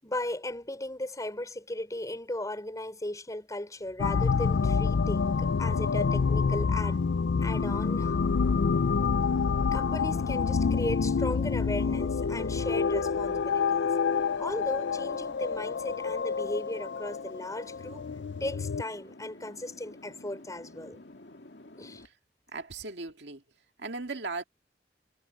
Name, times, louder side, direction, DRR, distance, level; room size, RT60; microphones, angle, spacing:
voice 1, 0.0-7.0 7.4-8.2 9.7-13.9 14.4-18.1 18.4-21.0 21.8-22.0, left 1 dB, 20° left, 5.5 m, -36 dB
sound 1, 4.0-18.8, left 5 dB, 85° left, 0.5 m, -27 dB
sound 2, 14.1-22.1, left 2 dB, 70° left, 2.6 m, -50 dB
voice 2, 22.5-23.4 23.8-24.4, right 3 dB, 70° right, 2.1 m, -37 dB
head